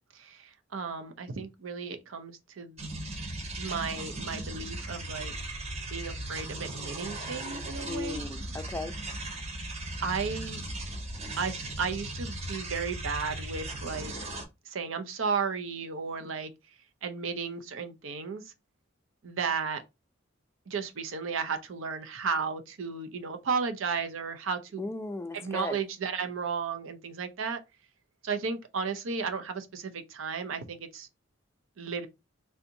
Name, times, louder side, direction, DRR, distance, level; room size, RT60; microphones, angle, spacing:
voice 1, 0.1-2.9 3.6-5.4 5.9-8.2 10.0-10.6 11.4-14.1 14.7-16.5 17.0-18.5 19.2-19.8 20.7-24.8 25.4-27.6 28.2-31.1 31.8-32.1, right 5 dB, 80° right, 0.6 m, -34 dB
sound 1, 2.8-14.4, right 1 dB, 30° right, 0.7 m, -37 dB
voice 2, 7.8-9.0 24.8-25.8, left 2 dB, 15° left, 0.4 m, -36 dB
3.4 x 2.7 x 2.6 m
head